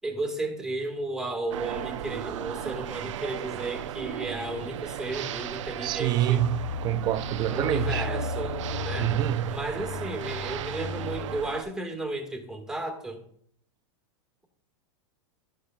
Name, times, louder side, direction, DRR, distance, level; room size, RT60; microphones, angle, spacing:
voice 1, 0.0-6.4 7.5-9.1 9.5-13.2, right 2 dB, 5° right, 1.6 m, -34 dB
sound 1, 1.5-11.6, right 10 dB, 85° right, 0.6 m, -36 dB
voice 2, 5.8-8.1 9.0-9.6, right 13 dB, 25° right, 0.4 m, -27 dB
sound 2, 6.4-11.4, left 6 dB, 70° left, 1.2 m, -35 dB
13.0 x 8.2 x 2.3 m
supercardioid pair, 140°, 16 cm